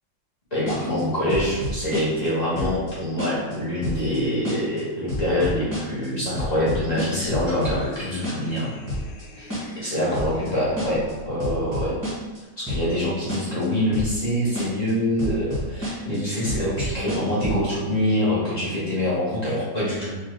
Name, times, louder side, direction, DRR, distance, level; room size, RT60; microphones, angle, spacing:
voice 1, 0.5-8.7 9.4-9.5 9.8-12.0 12.7-20.2, left 1 dB, 25° left, -10 dB, 1.1 m, -25 dB
sound 1, 0.7-1.0 1.3-2.3 2.6-2.9 3.2-3.5 3.8-4.2 4.4-4.8 5.1-6.1 6.3-8.0 8.2-8.6 8.9-9.2 9.5-9.9 10.1-10.5 10.8-11.1 11.4-12.4 12.7-13.0 13.3-13.6 13.9-14.3 14.6-14.9 15.2-16.2 16.5-17.6, equal, 15° right, 0.9 m, -29 dB
sound 2, 7.2-11.4, left 2 dB, 85° left, 1.3 m, -43 dB
4.2 x 2.9 x 3.2 m, 1.3 s
omnidirectional pair, 2.0 m